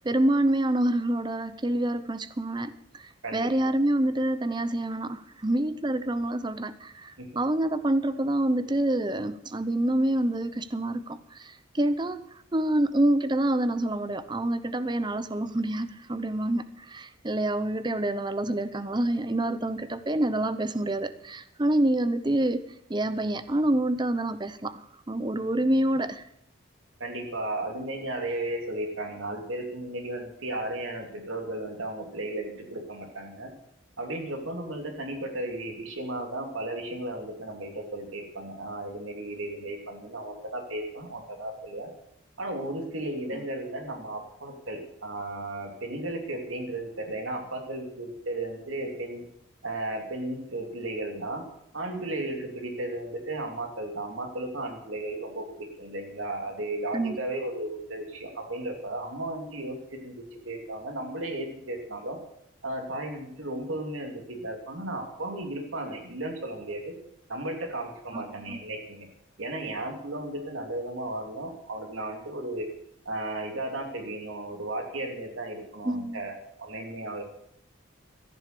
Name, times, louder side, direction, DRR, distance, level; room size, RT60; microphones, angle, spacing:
voice 1, 0.0-3.0 3.3-12.2 12.5-22.6 22.9-26.2 43.3-43.4 56.9-57.2 68.1-68.2 68.5-68.6 75.8-76.2, right 1 dB, 20° right, 13 dB, 0.7 m, -27 dB
voice 2, 3.2-3.7 7.2-7.3 27.0-33.5 34.0-41.9 42.4-49.2 49.6-51.4 51.7-62.2 62.6-66.9 67.3-69.1 69.4-72.7 73.0-77.2, right 1 dB, 90° right, 3 dB, 2.9 m, -35 dB
14.0 x 10.5 x 6.8 m, 0.75 s
head